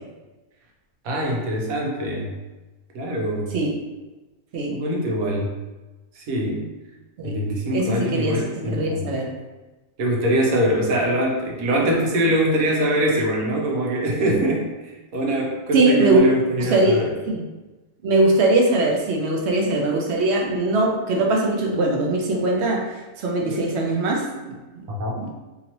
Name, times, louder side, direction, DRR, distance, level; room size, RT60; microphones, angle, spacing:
voice 1, 1.0-2.3 2.9-3.5 4.7-5.5 6.2-6.7 7.2-9.0 10.0-14.7 15.1-17.1 24.9-25.1, right 1 dB, 85° right, -2 dB, 1.2 m, -23 dB
voice 2, 7.7-8.4 8.7-9.3 15.7-16.2 16.6-17.4 18.0-22.8 23.2-24.9 25.2-25.3, right 2 dB, 60° right, 0 dB, 0.8 m, -21 dB
2.9 x 2.8 x 2.9 m, 1.1 s
omnidirectional pair, 1.5 m